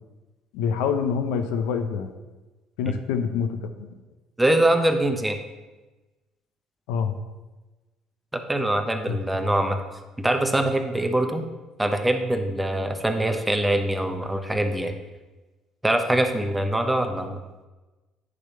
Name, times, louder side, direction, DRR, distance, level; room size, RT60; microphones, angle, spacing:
voice 1, 0.5-2.1 2.8-3.9 6.9-7.1 9.1-9.2, left 6 dB, 90° left, 8 dB, 0.6 m, -26 dB
voice 2, 4.4-5.4 8.3-9.8 10.2-11.4 11.8-15.0 15.8-17.4, right 1 dB, 10° right, 6 dB, 0.8 m, -23 dB
9.8 x 3.4 x 5.7 m, 1.2 s
supercardioid pair, 95°, 0 cm